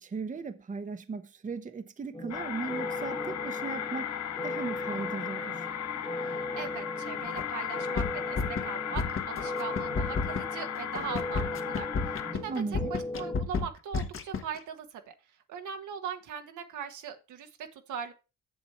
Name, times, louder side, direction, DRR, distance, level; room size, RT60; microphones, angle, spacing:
voice 1, 0.0-4.1 4.4-5.7 12.5-13.0, right 4 dB, 25° right, 0.8 m, -37 dB
sound 1, 2.1-13.4, left 1 dB, 15° left, 1.3 m, -38 dB
sound 2, 2.3-12.3, left 9 dB, 60° left, 0.8 m, -36 dB
voice 2, 6.2-15.1 15.5-18.1, right 7 dB, 75° right, 1.3 m, -40 dB
sound 3, 7.4-7.5 7.8-8.6 9.0-9.4 9.8-14.6, left 4 dB, 45° left, 1.1 m, -31 dB
7.2 x 6.9 x 4.4 m
cardioid pair, 90°, 30 cm